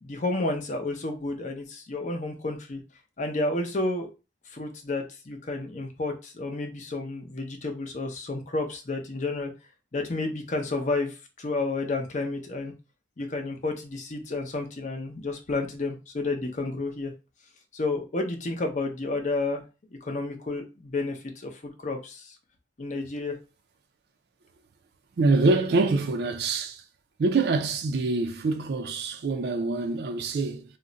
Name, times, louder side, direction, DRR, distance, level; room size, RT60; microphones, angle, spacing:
voice 1, 0.0-2.8 3.2-4.1 4.5-9.5 9.9-12.7 13.2-17.1 17.7-19.6 20.0-22.4 22.8-23.4, left 2 dB, 45° left, 0.6 m, -31 dB
voice 2, 25.2-26.8 27.2-30.6, right 3 dB, 65° right, 0.4 m, -25 dB
2.4 x 2.1 x 3.8 m
head